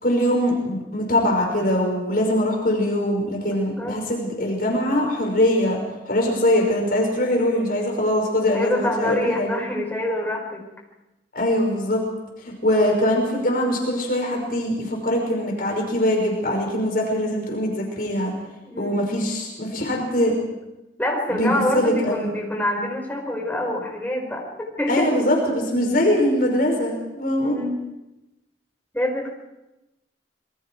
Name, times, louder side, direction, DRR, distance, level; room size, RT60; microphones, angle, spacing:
voice 1, 0.0-5.8 6.1-9.5 11.3-12.0 12.4-18.3 18.8-20.3 21.4-22.3 24.9-27.6, left 1 dB, 55° left, 0 dB, 5.6 m, -22 dB
voice 2, 3.4-4.0 8.5-10.6 18.6-19.0 21.0-24.5 24.8-25.1 27.4-27.7 28.9-29.3, left 1 dB, 10° left, 0 dB, 5.1 m, -26 dB
27.0 x 23.0 x 4.7 m, 0.98 s
head